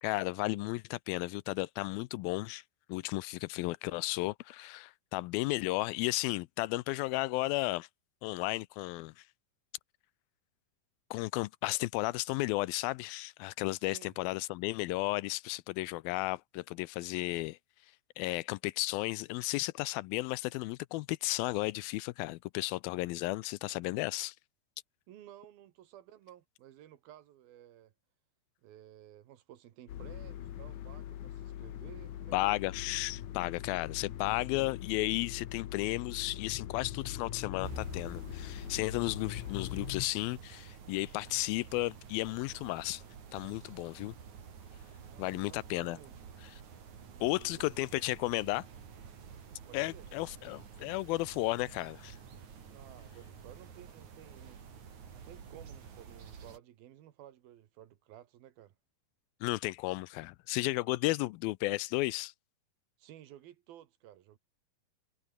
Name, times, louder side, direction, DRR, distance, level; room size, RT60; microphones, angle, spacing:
voice 1, 0.0-2.6 2.9-7.9 8.2-9.2 11.1-17.6 18.2-24.4 32.3-43.0 43.3-44.1 45.2-46.0 47.2-48.7 49.7-52.2 59.4-62.3, left 20 dB, 85° left, 2.5 m, -34 dB
voice 2, 13.8-14.2 25.1-27.9 28.6-32.6 45.1-46.1 47.1-48.0 49.7-50.1 52.7-54.6 55.1-58.7 63.0-64.4, right 12 dB, 85° right, 3.4 m, -55 dB
sound 1, 29.9-40.1, left 11 dB, 60° left, 2.6 m, -42 dB
sound 2, 37.6-56.6, right 7 dB, 55° right, 4.3 m, -50 dB
omnidirectional pair, 4.1 m